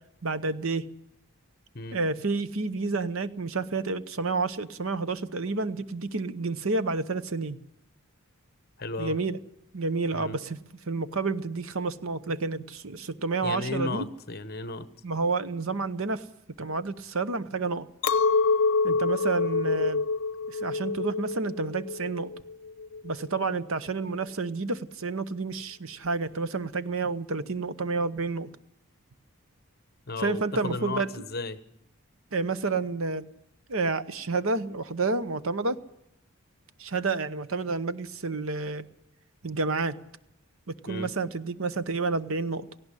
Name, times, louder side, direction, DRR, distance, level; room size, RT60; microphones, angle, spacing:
voice 1, 0.2-0.9 1.9-7.6 9.0-9.4 9.7-10.6 10.9-14.0 15.0-16.2 16.6-17.9 18.8-20.0 20.5-22.3 23.0-28.5 30.2-31.1 32.3-33.3 33.7-35.8 36.8-38.9 39.4-40.0 40.7-42.7, right 3 dB, 70° right, 14 dB, 0.9 m, -29 dB
voice 2, 8.8-9.2 10.1-10.4 13.4-14.9 30.1-31.6 40.9-41.1, left 3 dB, 45° left, 13 dB, 1.1 m, -34 dB
Chink clink, 18.0-23.4, left 4 dB, 65° left, 0.8 m, -27 dB
18.0 x 15.5 x 9.9 m, 0.83 s
head